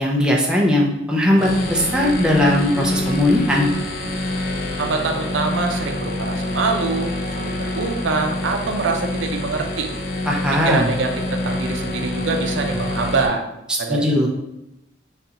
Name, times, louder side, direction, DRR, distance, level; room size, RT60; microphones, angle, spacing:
voice 1, 0.0-3.7 10.3-10.9 13.9-14.3, left 1 dB, 5° right, -2 dB, 0.4 m, -18 dB
sound 1, 1.4-13.3, left 1 dB, 50° left, 0.4 m, -26 dB
voice 2, 4.8-9.9 10.6-13.4 13.8-14.3, right 4 dB, 85° right, 4 dB, 0.5 m, -24 dB
5.2 x 2.3 x 2.8 m, 0.88 s
head